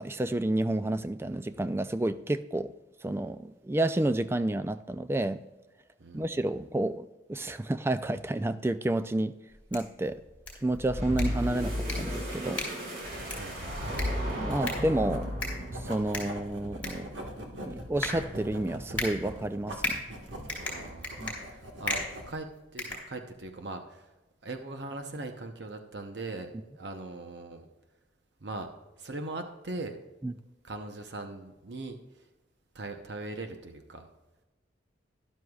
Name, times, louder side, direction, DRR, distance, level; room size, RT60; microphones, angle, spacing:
voice 1, 0.0-2.7 3.0-5.4 6.1-9.3 9.7-10.2 10.6-12.7 14.4-15.4 15.8-17.1 17.6-20.0 21.2-21.3 30.2-30.3, right 1 dB, 15° right, 11 dB, 0.3 m, -30 dB
voice 2, 6.0-6.3 13.3-13.8 20.5-22.5 22.7-24.1 24.4-27.6 28.4-28.7 29.0-30.0 30.6-32.0 32.7-34.1, right 2 dB, 65° right, 6 dB, 0.8 m, -40 dB
sound 1, 9.5-23.6, left 2 dB, 10° left, 3.1 m, -39 dB
sound 2, 10.8-15.9, equal, 50° right, 2.7 m, -34 dB
Writing, 13.0-22.4, right 1 dB, 85° right, 1.5 m, -41 dB
13.0 x 11.5 x 2.4 m, 1.1 s
head